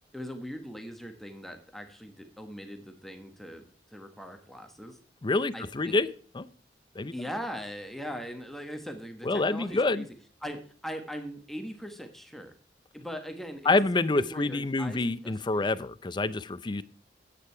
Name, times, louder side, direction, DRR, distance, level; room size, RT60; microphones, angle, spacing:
voice 1, 0.1-5.0 5.5-6.0 7.1-10.1 10.4-12.5 12.9-15.7, equal, ahead, 5 dB, 1.2 m, -40 dB
voice 2, 5.2-6.1 6.3-6.5 7.0-7.3 9.2-10.0 13.7-16.8, left 2 dB, 25° left, 16 dB, 0.5 m, -27 dB
10.0 x 8.6 x 4.4 m, 0.43 s
head